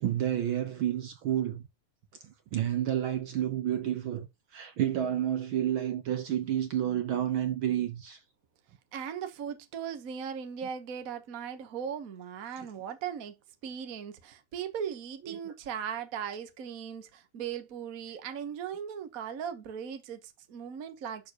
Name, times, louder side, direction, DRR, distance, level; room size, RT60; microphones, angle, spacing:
voice 1, 0.0-1.6 2.2-8.2 12.5-12.7 15.3-15.5, right 11 dB, 75° right, 1.2 m, -30 dB
voice 2, 8.9-13.4 13.6-21.3, right 8 dB, 90° right, 0.7 m, -38 dB
11.5 x 6.6 x 3.0 m
omnidirectional pair, 3.6 m